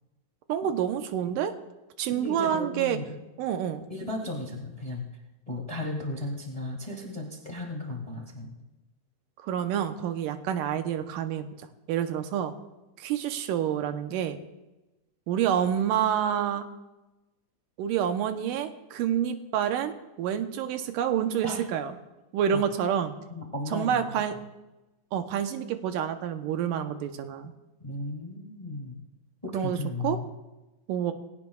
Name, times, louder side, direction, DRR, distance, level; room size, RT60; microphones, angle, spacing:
voice 1, 0.5-1.5 2.0-3.0 3.4-3.9 9.4-11.5 11.9-12.5 13.0-14.4 15.3-16.7 17.8-21.9 22.3-23.1 23.7-24.3 25.1-27.5 29.5-29.8 30.0-30.2 30.9-31.1, right 9 dB, 80° right, 8 dB, 2.4 m, -28 dB
voice 2, 2.1-3.2 3.9-5.0 5.5-8.5 21.4-21.6 22.5-22.6 23.3-24.0 27.8-29.0 29.4-30.3, left 2 dB, 15° left, 0 dB, 1.5 m, -35 dB
20.0 x 17.0 x 2.4 m, 1.0 s
omnidirectional pair, 4.0 m